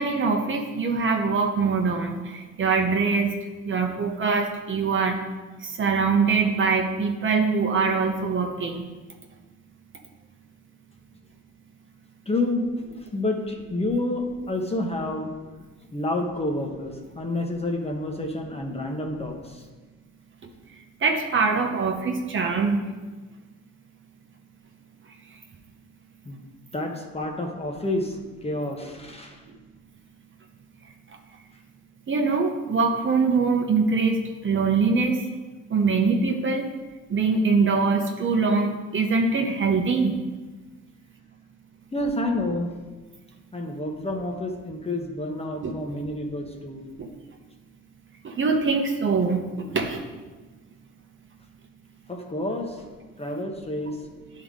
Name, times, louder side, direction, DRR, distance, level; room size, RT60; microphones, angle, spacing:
voice 1, 0.0-3.3 3.6-5.2 5.6-8.8 21.0-22.8 29.5-29.6 32.1-35.2 35.7-36.7 37.1-40.2 45.6-45.7 47.0-47.1 48.2-50.0, right 4 dB, 40° right, 3 dB, 0.8 m, -23 dB
voice 2, 12.3-12.7 13.1-15.3 15.9-19.7 26.2-26.4 26.7-29.4 41.9-42.7 43.5-46.8 52.1-52.8 53.2-54.0, left 2 dB, 20° left, 2 dB, 1.0 m, -29 dB
10.0 x 3.8 x 3.6 m, 1.3 s
cardioid pair, 90°, 30 cm